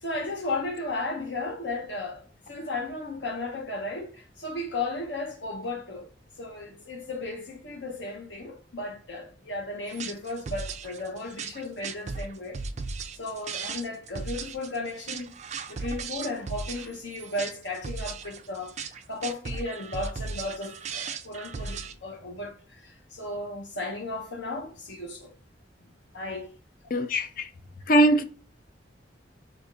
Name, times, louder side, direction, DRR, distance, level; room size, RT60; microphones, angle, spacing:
voice 1, 0.0-6.1 6.4-12.6 13.2-15.3 15.7-25.3 26.1-26.5, left 2 dB, 75° left, 1.1 m, -35 dB
sound 1, 9.9-21.9, right 4 dB, 40° right, 0.4 m, -36 dB
voice 2, 26.9-27.5 27.9-28.2, right 1 dB, 50° left, 0.5 m, -21 dB
3.8 x 2.5 x 3.7 m
head